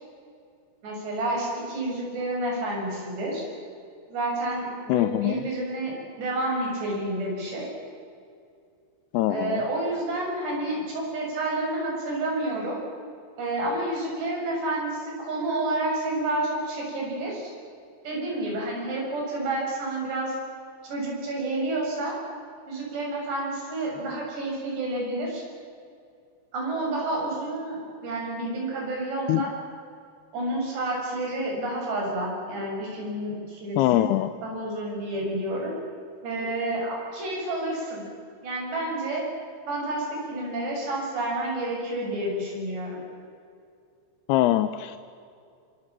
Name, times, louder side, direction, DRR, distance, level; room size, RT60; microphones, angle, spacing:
voice 1, 0.8-3.5 4.1-5.9 6.2-7.7 9.3-12.8 13.4-17.5 18.0-20.4 20.8-22.2 22.7-25.4 26.5-29.5 30.3-34.1 34.4-35.7 36.2-38.1 38.4-39.2 39.7-43.0, right 2 dB, 80° right, -1 dB, 9.3 m, -29 dB
voice 2, 4.9-5.4 9.1-9.6 29.3-29.4 33.8-34.3 44.3-45.0, left 14 dB, 80° left, 11 dB, 2.7 m, -22 dB
27.5 x 27.0 x 7.5 m, 2.4 s
omnidirectional pair, 4.8 m